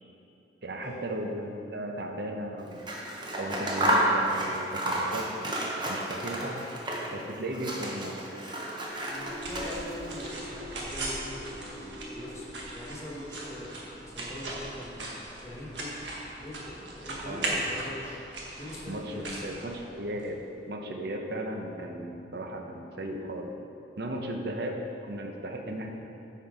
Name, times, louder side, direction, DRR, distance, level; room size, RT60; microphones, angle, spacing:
voice 1, 0.6-2.8 3.4-5.6 5.9-6.7 7.1-8.1 17.3-17.6 18.9-20.4 20.7-23.5 24.0-25.9, right 1 dB, 65° right, 3 dB, 0.8 m, -36 dB
Scissors, 2.7-7.2 7.5-10.1, right 1 dB, 25° right, 0.9 m, -31 dB
sound 1, 8.6-14.5, equal, 35° left, 1.0 m, -46 dB
sound 2, 9.0-20.3, right 2 dB, 90° right, 1.4 m, -38 dB
voice 2, 9.1-11.9 12.1-12.5 12.7-13.7 14.1-15.1 15.4-16.1 16.4-18.2 18.5-19.7, left 1 dB, 15° left, -6 dB, 1.4 m, -42 dB
9.0 x 4.6 x 4.9 m, 2.8 s
head